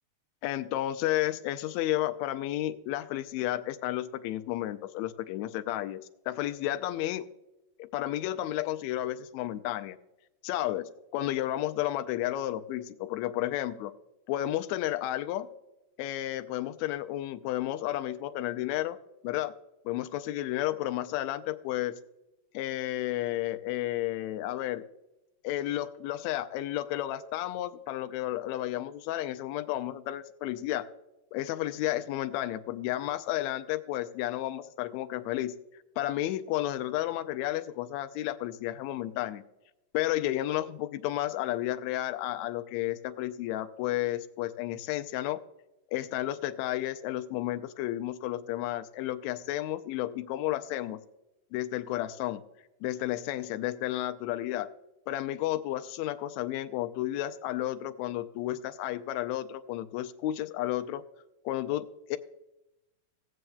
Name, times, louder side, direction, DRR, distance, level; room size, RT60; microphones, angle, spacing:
voice 1, 0.4-7.3 7.8-10.0 10.4-13.9 14.3-15.5 16.0-19.0 19.2-19.5 19.9-22.0 22.5-24.8 25.4-30.9 31.3-35.5 36.0-39.4 39.9-45.4 45.9-51.0 51.5-52.4 52.8-54.7 55.1-61.0 61.5-62.2, left 14 dB, 80° left, 9 dB, 1.8 m, -32 dB
18.0 x 7.7 x 2.3 m, 0.91 s
omnidirectional pair, 3.4 m